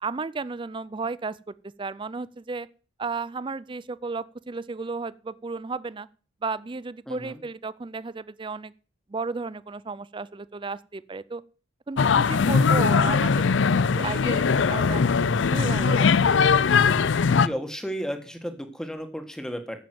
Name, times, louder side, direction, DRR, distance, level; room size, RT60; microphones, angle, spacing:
voice 1, 0.0-2.7 3.0-6.1 6.4-8.7 9.1-11.4 11.9-16.2, right 4 dB, 25° right, 0.5 m, -34 dB
voice 2, 7.1-7.4 17.4-19.8, equal, 5° left, 1.6 m, -33 dB
sound 1, 12.0-17.5, left 5 dB, 80° left, 0.5 m, -20 dB
9.0 x 7.4 x 7.7 m
head